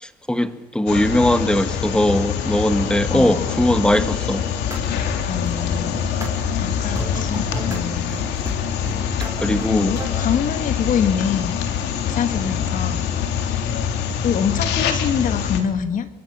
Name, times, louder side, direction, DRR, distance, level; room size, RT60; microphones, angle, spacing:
voice 1, 0.0-4.5 9.4-10.0, left 1 dB, 5° left, 1.8 m, -20 dB
sound 1, 0.9-15.6, left 8 dB, 85° left, 3.3 m, -24 dB
voice 2, 3.1-3.5 5.3-6.0 6.5-8.2 9.7-11.6 12.1-13.1 14.2-16.1, left 7 dB, 50° left, 2.6 m, -25 dB
sound 2, 4.6-4.8 5.1-7.8 8.1-8.5 8.8-10.4, right 2 dB, 20° right, 6.4 m, -35 dB
27.0 x 23.5 x 7.3 m
cardioid pair, 110°, 17 cm